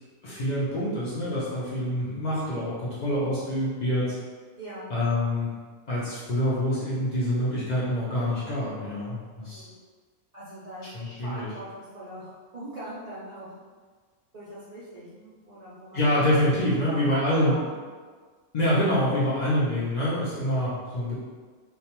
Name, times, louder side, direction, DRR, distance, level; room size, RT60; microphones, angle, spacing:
voice 1, 0.2-4.2 4.9-5.5 5.9-9.6 10.9-11.5 15.9-17.6 18.5-21.2, equal, 85° left, -9 dB, 0.3 m, -26 dB
voice 2, 4.6-4.9 9.4-9.8 10.3-13.6 14.3-16.2 16.7-17.2 17.5-17.8, right 1 dB, 80° right, -11 dB, 0.3 m, -41 dB
2.4 x 2.2 x 2.8 m, 1.5 s
omnidirectional pair, 1.5 m